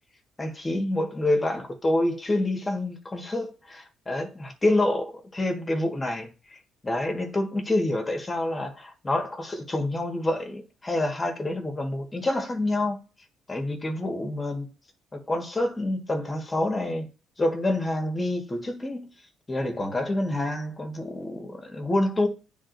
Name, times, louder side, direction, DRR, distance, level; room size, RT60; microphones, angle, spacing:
voice 1, 0.4-13.0 13.5-14.7 15.1-17.1 17.4-19.1 19.5-22.3, left 1 dB, 25° left, 1.6 m, -27 dB
9.7 x 3.8 x 2.7 m
cardioid pair, 85°, 0 cm